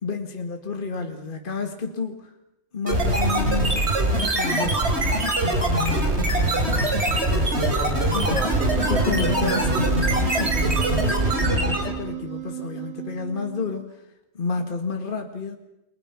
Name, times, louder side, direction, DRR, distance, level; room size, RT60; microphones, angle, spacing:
voice 1, 0.0-2.3 2.7-3.9 4.4-4.9 5.6-7.6 8.1-8.3 8.9-13.9 14.3-15.6, left 4 dB, 35° left, 4 dB, 1.8 m, -30 dB
sound 1, 2.9-12.0, right 1 dB, 45° right, 4.2 m, -22 dB
voice 2, 4.7-5.0 6.1-6.3 7.6-9.3, left 2 dB, 65° left, 5 dB, 3.8 m, -34 dB
Wind instrument woodwind instrument, 8.5-13.9, right 16 dB, 75° right, 2.2 m, -33 dB
29.0 x 23.5 x 6.0 m, 0.89 s
omnidirectional pair, 1.5 m